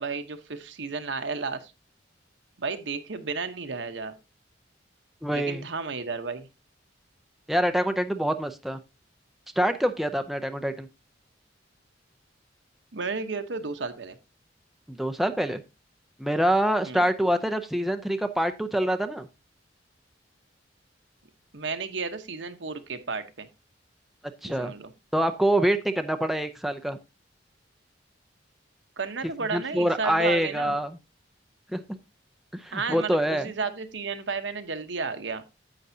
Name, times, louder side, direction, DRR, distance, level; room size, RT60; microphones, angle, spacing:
voice 1, 0.0-1.7 2.6-4.1 5.3-6.5 12.9-14.2 16.8-17.0 21.5-23.5 24.4-24.9 29.0-30.8 32.7-35.4, right 4 dB, 70° right, 8 dB, 1.0 m, -33 dB
voice 2, 5.2-5.6 7.5-8.8 9.6-10.9 14.9-15.6 16.2-19.3 24.4-24.7 25.1-27.0 29.5-31.0 31.7-31.8 32.5-33.5, right 1 dB, ahead, 7 dB, 0.5 m, -25 dB
10.0 x 8.0 x 2.7 m, 0.25 s
head